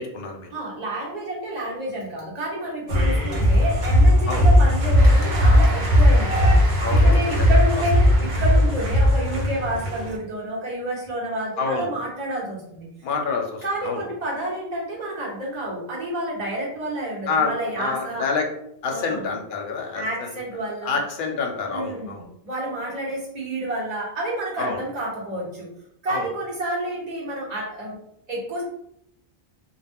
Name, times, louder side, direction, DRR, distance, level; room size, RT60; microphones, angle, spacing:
voice 1, 0.0-0.5 4.3-4.5 6.8-7.8 11.6-11.9 13.0-14.0 17.3-18.5 18.8-20.3 20.8-22.3 24.6-24.8 26.1-26.3, left 4 dB, 65° left, 3 dB, 0.7 m, -28 dB
voice 2, 0.5-12.8 13.6-18.2 18.9-19.3 19.9-21.0 21.7-25.7 26.0-28.0 28.3-28.6, right 1 dB, 45° right, -5 dB, 1.0 m, -29 dB
sound 1, 2.9-10.1, equal, 80° right, 0.9 m, -17 dB
Cheering / Applause, 5.0-9.9, right 1 dB, 25° right, 0.5 m, -36 dB
2.2 x 2.1 x 3.4 m, 0.74 s
omnidirectional pair, 1.0 m